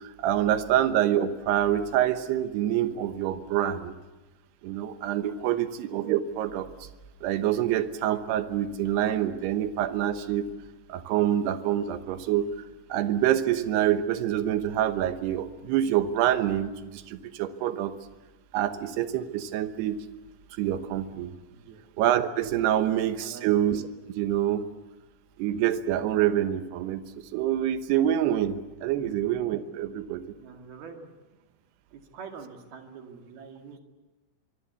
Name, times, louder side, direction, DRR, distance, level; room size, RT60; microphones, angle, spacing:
voice 1, 0.0-4.0 4.6-6.9 7.2-10.5 10.9-12.5 12.9-17.9 18.5-20.0 20.5-21.3 22.0-23.8 24.2-24.6 25.4-27.0 27.3-30.4, right 11 dB, 70° right, 10 dB, 2.7 m, -26 dB
voice 2, 21.5-21.8 23.2-23.5 29.0-29.1 30.3-31.1 31.9-33.8, right 6 dB, 55° right, 3 dB, 3.7 m, -45 dB
24.5 x 23.5 x 8.3 m, 1.1 s
omnidirectional pair, 5.8 m